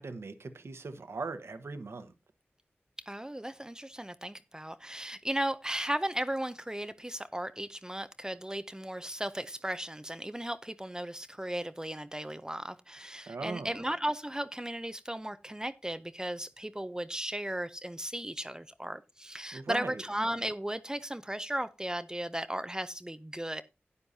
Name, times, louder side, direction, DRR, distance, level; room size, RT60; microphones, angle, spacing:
voice 1, 0.0-2.1 13.3-13.8 19.5-20.0, right 3 dB, 80° right, 1.2 m, -39 dB
voice 2, 3.1-23.6, right 1 dB, 15° right, 0.6 m, -36 dB
12.5 x 9.6 x 2.7 m
cardioid pair, 45°, 4 cm